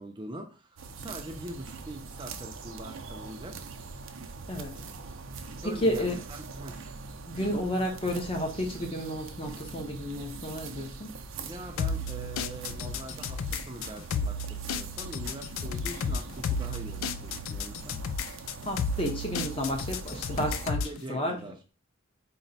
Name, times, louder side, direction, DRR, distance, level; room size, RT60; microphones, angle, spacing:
voice 1, 0.0-3.6 5.6-6.8 11.4-18.0 20.8-21.6, right 1 dB, 25° right, 3 dB, 0.5 m, -43 dB
sound 1, 0.8-20.7, right 4 dB, 70° right, 0.5 m, -43 dB
voice 2, 5.6-6.1 7.2-11.1 18.7-21.4, equal, 30° left, 2 dB, 0.9 m, -31 dB
sound 2, 11.8-21.0, left 4 dB, 85° left, 0.4 m, -33 dB
4.2 x 2.1 x 4.0 m, 0.33 s
head